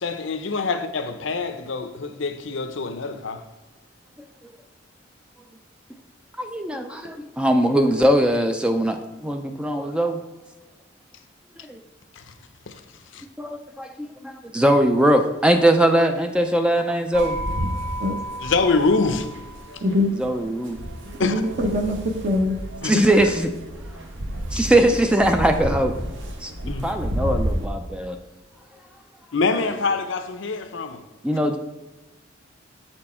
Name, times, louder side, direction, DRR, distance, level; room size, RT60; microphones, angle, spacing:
voice 1, 0.0-3.4 13.1-13.2 18.4-19.3 21.2-21.3 22.8-22.9 24.6-24.7 26.7-26.8 29.3-31.0, left 4 dB, 65° left, 0.6 m, -24 dB
voice 2, 6.4-10.2 11.7-11.8 13.4-13.9 14.2-17.4 20.2-20.8 22.8-23.5 24.5-25.9 26.4-28.2 31.2-31.6, right 1 dB, 5° right, 0.3 m, -20 dB
sound 1, 17.1-27.7, equal, 65° right, 0.9 m, -31 dB
voice 3, 19.8-20.1 21.2-22.6, left 2 dB, 40° right, 0.8 m, -23 dB
7.7 x 4.4 x 4.2 m
head